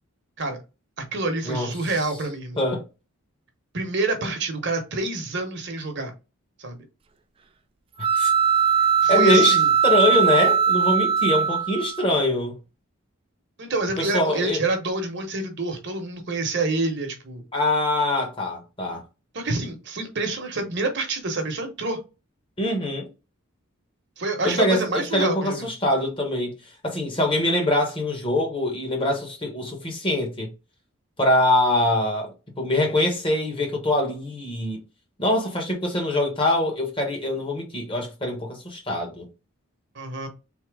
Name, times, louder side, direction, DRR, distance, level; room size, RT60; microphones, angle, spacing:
voice 1, 1.1-2.6 3.7-6.1 6.6-6.8 9.0-9.7 13.6-17.4 19.3-22.0 24.2-25.6 39.9-40.3, right 2 dB, 50° right, 1.0 m, -27 dB
sound 1, 8.0-12.1, right 7 dB, 25° right, 0.3 m, -20 dB
voice 2, 9.1-12.6 14.0-14.6 17.5-19.0 22.6-23.1 24.4-26.6 26.8-30.5 31.2-34.8 35.2-39.3, left 1 dB, 25° left, 1.1 m, -23 dB
3.6 x 2.8 x 4.7 m
head